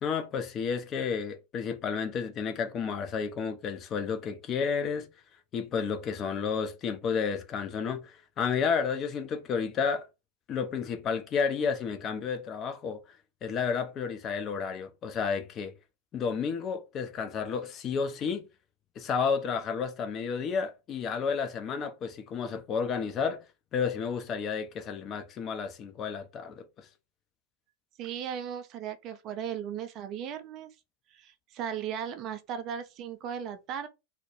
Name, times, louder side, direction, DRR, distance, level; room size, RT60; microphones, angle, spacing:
voice 1, 0.0-5.1 5.5-10.1 10.5-15.7 16.1-18.5 19.0-23.4 23.7-26.9, left 6 dB, 30° left, 0.4 m, -31 dB
voice 2, 28.0-30.7 31.1-33.9, right 8 dB, 35° right, 0.3 m, -36 dB
2.1 x 2.0 x 3.0 m
figure-of-eight pair, 90°, 0 cm